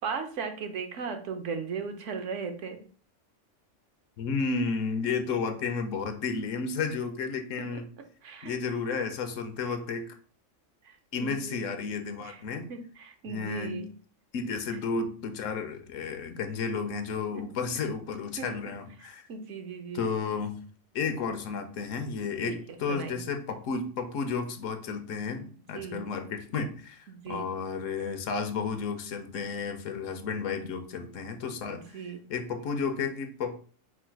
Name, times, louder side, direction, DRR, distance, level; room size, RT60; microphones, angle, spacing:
voice 1, 0.0-2.8 8.2-8.6 10.8-11.9 12.2-12.4 12.7-13.9 17.3-17.4 18.4-18.5 19.3-20.0 22.4-22.6 22.9-23.2 25.7-26.1 27.1-27.5 31.7-32.2, right 5 dB, 70° right, 6 dB, 1.1 m, -37 dB
voice 2, 4.2-7.9 8.4-10.2 11.1-12.7 13.3-13.9 14.3-19.2 19.9-20.6 20.9-32.0 32.3-33.6, left 5 dB, 85° left, 8 dB, 1.1 m, -32 dB
4.8 x 2.3 x 4.5 m, 0.42 s
omnidirectional pair, 1.3 m